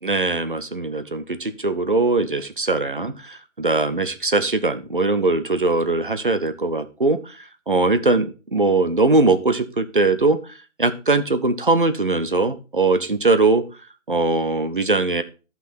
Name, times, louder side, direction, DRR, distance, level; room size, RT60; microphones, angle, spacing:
voice 1, 0.0-10.4 10.8-13.6 14.1-15.2, right 3 dB, 45° right, 12 dB, 0.6 m, -21 dB
10.5 x 5.9 x 4.2 m, 0.33 s
hypercardioid pair, 175°, 39 cm